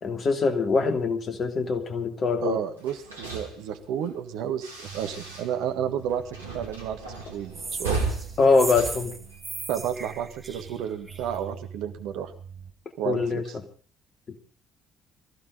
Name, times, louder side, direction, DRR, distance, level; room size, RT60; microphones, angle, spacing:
voice 1, 0.0-2.6 8.4-9.1 13.0-13.4, left 4 dB, 45° left, 7 dB, 2.8 m, -23 dB
voice 2, 2.4-8.1 9.7-12.3 13.0-13.4, right 9 dB, 65° right, 8 dB, 1.6 m, -31 dB
sound 1, 2.8-5.7 6.0-9.9, right 3 dB, 90° right, 2.5 m, -36 dB
sound 2, 4.8-12.7, right 8 dB, 45° right, 4.6 m, -46 dB
sound 3, 7.5-11.3, right 3 dB, 25° right, 3.8 m, -37 dB
22.5 x 15.0 x 3.9 m, 0.38 s
figure-of-eight pair, 45°, 0 cm